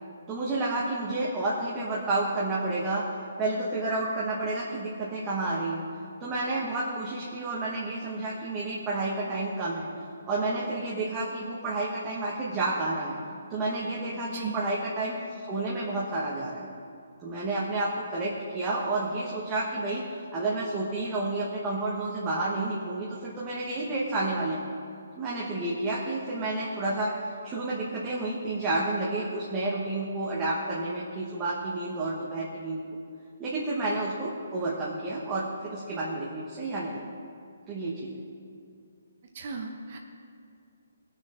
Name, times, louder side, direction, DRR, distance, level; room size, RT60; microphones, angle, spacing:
voice 1, 0.3-3.0 3.4-5.8 6.2-9.9 10.2-13.2 13.5-16.7 17.2-24.6 25.2-32.8 33.4-37.1 37.7-38.2, right 2 dB, 15° right, -6 dB, 1.2 m, -30 dB
voice 2, 39.3-40.0, right 5 dB, 40° right, 2 dB, 1.0 m, -36 dB
19.0 x 6.4 x 4.4 m, 2.4 s
hypercardioid pair, 165°, 0 cm